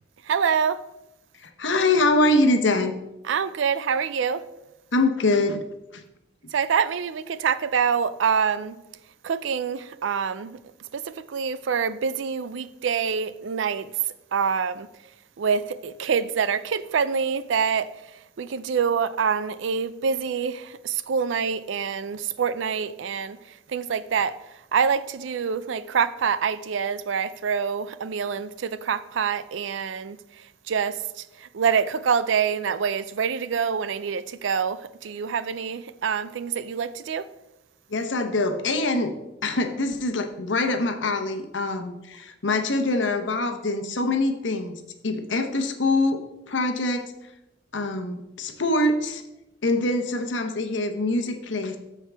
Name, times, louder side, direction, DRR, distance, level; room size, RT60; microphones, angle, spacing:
voice 1, 0.2-0.8 3.2-4.4 6.5-8.8 9.2-10.6 10.9-14.9 15.4-37.3, right 6 dB, 75° right, 0.4 m, -26 dB
voice 2, 1.4-2.9 4.9-5.6 5.9-6.0 37.9-39.2 39.4-46.2 46.5-47.1 47.7-49.2 49.6-51.8, left 2 dB, 75° left, 0.9 m, -24 dB
13.5 x 4.7 x 3.4 m
head